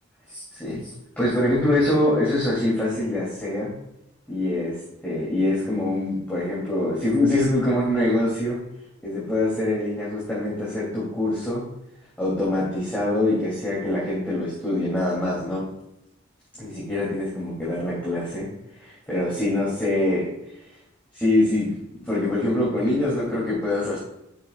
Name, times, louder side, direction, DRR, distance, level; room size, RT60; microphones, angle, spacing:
voice 1, 0.3-0.8 1.2-3.7 4.3-4.8 5.0-8.6 9.0-11.6 12.2-15.6 16.6-18.5 18.8-20.3 21.1-21.7 22.0-24.0, left 1 dB, 10° left, -8 dB, 2.9 m, -24 dB
11.0 x 7.6 x 2.4 m, 0.84 s
head